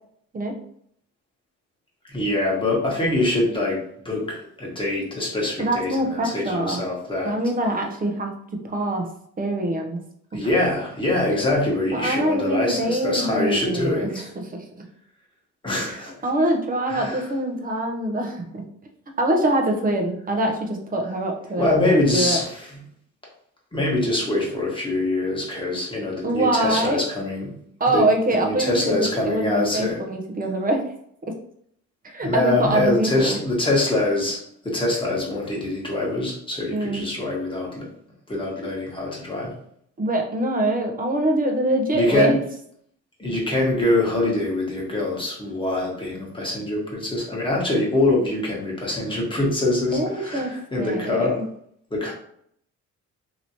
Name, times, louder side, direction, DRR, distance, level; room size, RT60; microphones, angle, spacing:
voice 1, 2.1-7.3 10.3-14.3 15.6-16.1 16.9-17.2 21.6-22.5 23.7-27.5 27.9-28.0 28.4-30.0 32.2-34.4 34.6-37.9 38.3-39.5 41.9-42.4 43.2-51.4 51.9-52.1, left 2 dB, 15° left, -3 dB, 1.3 m, -24 dB
voice 2, 5.6-6.8 7.2-9.1 9.4-10.0 10.3-10.5 11.9-14.2 14.5-14.6 15.9-18.7 19.2-22.4 26.2-27.0 27.8-30.8 32.0-33.4 36.7-37.1 40.0-42.4 49.9-51.4, right 1 dB, 30° right, 3 dB, 0.7 m, -24 dB
3.0 x 2.9 x 2.7 m, 0.69 s
cardioid pair, 90°, 30 cm